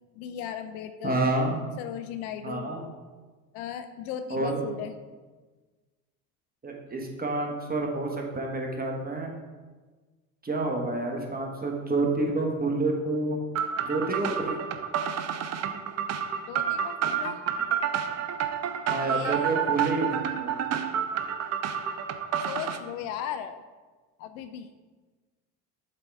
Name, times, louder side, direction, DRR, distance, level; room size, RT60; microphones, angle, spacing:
voice 1, 0.1-1.2 1.8-2.8 3.5-4.9 16.5-17.4 19.0-19.5 22.4-23.6 24.2-24.7, left 9 dB, 65° left, 10 dB, 0.6 m, -36 dB
voice 2, 1.0-1.6 2.4-2.8 4.3-4.7 6.6-9.3 10.4-13.4 13.8-14.5 18.8-20.7, right 2 dB, 20° right, 1 dB, 1.4 m, -29 dB
sound 1, 13.6-22.8, right 8 dB, 35° right, 0.6 m, -29 dB
7.7 x 3.7 x 4.8 m, 1.3 s
hypercardioid pair, 70°, 48 cm